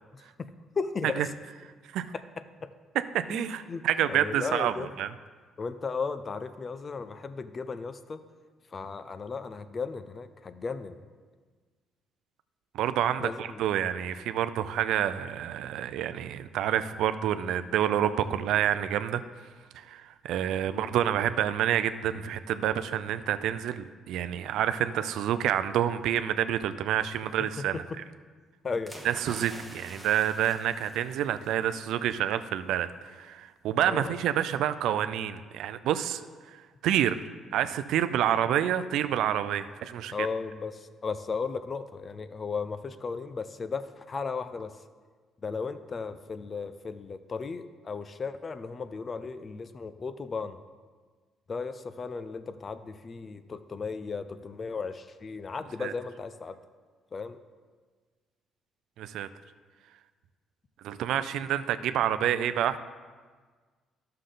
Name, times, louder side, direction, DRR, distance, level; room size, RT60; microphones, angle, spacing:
voice 1, 0.1-1.2 2.6-2.7 3.3-3.8 4.1-4.9 5.6-8.2 8.7-11.0 13.2-13.6 20.7-20.9 27.6-28.0 28.6-29.0 33.9-34.2 40.1-44.8 45.4-50.6 51.5-56.6 57.1-57.4, left 4 dB, 35° left, 12 dB, 0.5 m, -35 dB
voice 2, 3.1-5.1 12.7-19.2 19.7-27.8 29.0-36.2 36.5-37.2 37.5-40.3 55.8-55.9 59.0-59.3 60.8-62.8, right 10 dB, 80° right, 12 dB, 0.4 m, -28 dB
sound 1, 28.9-31.9 32.2-32.4, equal, ahead, 1.1 m, -47 dB
11.5 x 6.6 x 3.8 m, 1.5 s
cardioid pair, 110°, 0 cm